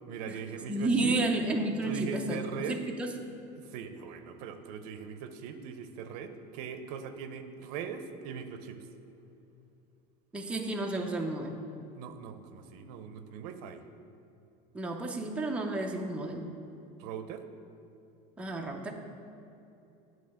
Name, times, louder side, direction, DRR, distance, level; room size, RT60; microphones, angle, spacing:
voice 1, 0.1-1.2 1.8-2.8 3.6-8.9 12.0-13.8 17.0-17.4, right 6 dB, 80° right, 9 dB, 0.6 m, -40 dB
voice 2, 0.7-2.4 2.7-3.1 10.3-11.6 14.7-16.5 18.4-18.9, right 2 dB, 5° right, 1 dB, 0.5 m, -31 dB
8.9 x 3.1 x 6.3 m, 2.8 s
cardioid pair, 145°, 20 cm